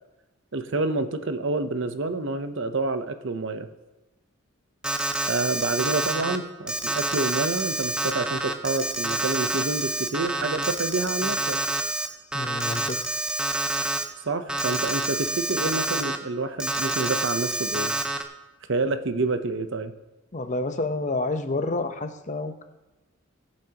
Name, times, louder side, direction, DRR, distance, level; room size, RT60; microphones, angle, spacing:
voice 1, 0.5-3.7 5.2-11.6 14.2-17.9 18.7-19.9, right 3 dB, 60° right, 9 dB, 0.8 m, -28 dB
Alarm, 4.8-6.4 6.7-12.1 12.3-14.0 14.5-16.2 16.6-18.2, right 2 dB, 5° right, 0.7 m, -28 dB
voice 2, 12.3-13.0 20.3-22.6, left 2 dB, 35° left, 8 dB, 0.8 m, -29 dB
21.5 x 8.6 x 2.9 m, 1.1 s
head